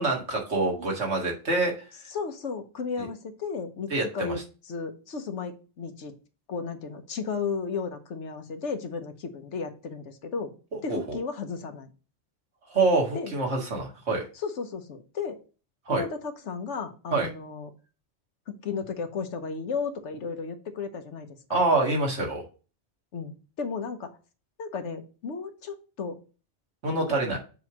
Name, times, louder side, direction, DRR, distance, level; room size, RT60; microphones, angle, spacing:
voice 1, 0.0-1.7 3.0-3.1 3.9-4.4 10.9-11.2 12.7-14.3 15.9-16.0 17.1-17.3 21.5-22.4 26.8-27.4, right 3 dB, 70° right, 0 dB, 2.0 m, -26 dB
voice 2, 2.1-4.4 4.7-6.1 6.5-10.6 10.8-11.9 13.1-13.3 14.4-15.4 15.9-17.7 18.5-21.6 23.1-24.1 24.6-26.2 26.9-27.4, left 5 dB, 85° left, 7 dB, 1.2 m, -34 dB
6.8 x 3.1 x 5.8 m, 0.35 s
omnidirectional pair, 1.2 m